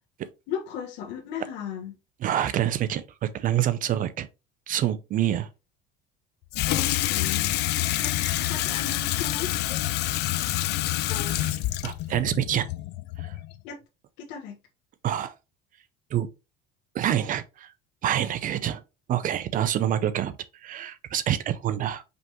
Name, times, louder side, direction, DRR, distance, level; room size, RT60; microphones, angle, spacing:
voice 1, 0.5-1.9 6.6-7.5 8.0-9.9 11.1-11.4 13.6-13.8 14.2-14.6, left 8 dB, 75° left, 1.4 m, -36 dB
voice 2, 2.2-4.3 4.7-5.5 11.3-11.5 11.8-12.7 13.2-13.4 15.0-15.3 16.1-16.3 16.9-17.7 18.0-18.8 19.1-20.4 20.6-22.1, right 11 dB, 45° right, 0.5 m, -27 dB
Water tap faucet / Sink (filling or washing), 6.5-13.6, left 16 dB, 60° left, 0.4 m, -27 dB
5.2 x 3.4 x 3.0 m
cardioid pair, 110°, 19 cm